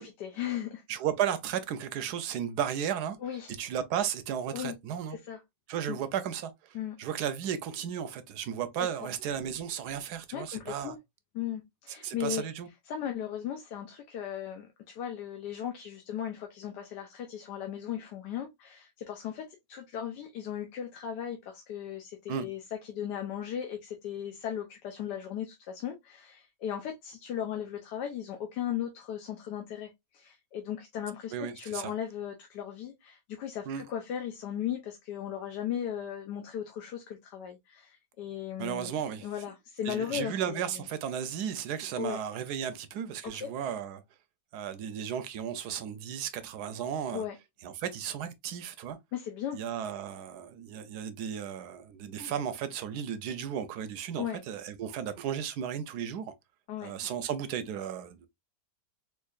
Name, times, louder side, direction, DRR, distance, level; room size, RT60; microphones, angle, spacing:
voice 1, 0.0-0.8 3.2-3.5 4.5-4.8 5.1-5.4 5.9-6.0 6.7-7.0 10.3-11.0 11.3-12.4 12.9-38.9 39.2-40.6 42.0-42.2 43.2-43.5 47.1-47.4 49.1-49.6 54.2-54.4 56.7-56.9, left 9 dB, 75° left, 1.3 m, -37 dB
voice 2, 0.9-3.2 3.6-5.2 5.7-10.9 12.0-12.7 22.3-22.5 31.3-31.9 33.7-33.8 38.6-39.3 39.9-44.0 44.5-47.2 47.6-49.0 49.5-56.3 56.8-58.3, right 9 dB, 75° right, 1.1 m, -34 dB
4.6 x 2.6 x 2.3 m
omnidirectional pair, 1.9 m